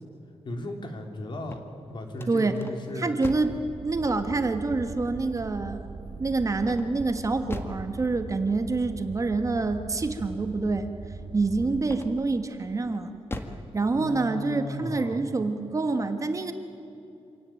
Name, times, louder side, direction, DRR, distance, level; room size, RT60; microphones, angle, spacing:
voice 1, 0.4-1.6 1.9-3.2 13.9-15.2, left 1 dB, 45° left, 4 dB, 3.3 m, -36 dB
sound 1, 1.3-3.7 6.6-7.9 11.8-12.4 12.9-13.7, left 2 dB, 20° left, 1.7 m, -39 dB
voice 2, 2.3-2.6 2.9-3.6 3.8-5.8 6.2-10.9 11.3-13.1 13.7-16.5, right 3 dB, 30° right, 7 dB, 1.5 m, -27 dB
sound 2, 3.5-11.9, right 3 dB, 45° right, 2.1 m, -41 dB
27.0 x 17.5 x 9.2 m, 2.7 s
wide cardioid pair, 140°, 11 cm